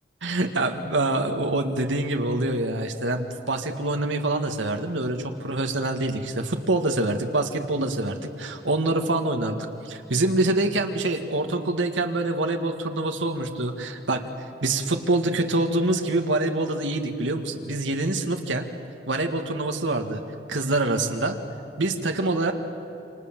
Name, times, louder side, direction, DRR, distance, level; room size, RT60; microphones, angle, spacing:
voice 1, 0.2-14.2 14.6-18.6 19.1-20.2 20.5-21.3 21.8-22.5, right 2 dB, 90° right, 4 dB, 1.9 m, -25 dB
29.0 x 27.0 x 7.6 m, 2.8 s
head